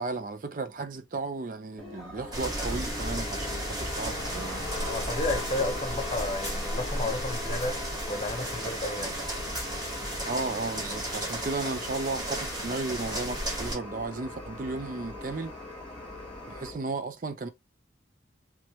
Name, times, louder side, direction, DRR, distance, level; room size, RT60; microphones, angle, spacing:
voice 1, 0.0-4.6 5.6-5.7 10.2-15.5 16.5-17.5, right 3 dB, 45° right, 0.4 m, -34 dB
sound 1, 1.8-16.8, left 2 dB, 5° left, 1.4 m, -40 dB
sound 2, 2.3-13.7, right 1 dB, 20° right, 1.5 m, -34 dB
voice 2, 4.8-9.2, left 2 dB, 30° left, 0.8 m, -32 dB
3.1 x 3.1 x 3.0 m
head